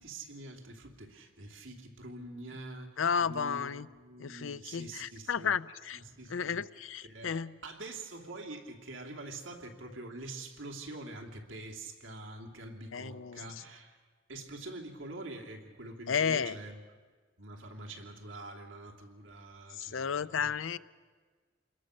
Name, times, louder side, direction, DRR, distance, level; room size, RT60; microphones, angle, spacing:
voice 1, 0.0-5.5 5.9-6.6 7.0-14.0 14.3-16.8 17.4-20.5, right 2 dB, 80° right, 1 dB, 2.9 m, -45 dB
voice 2, 3.0-3.9 4.2-6.0 6.3-7.5 12.9-13.6 16.1-16.6 19.7-20.8, left 6 dB, 80° left, 15 dB, 0.6 m, -33 dB
28.0 x 21.0 x 6.5 m, 1.5 s
head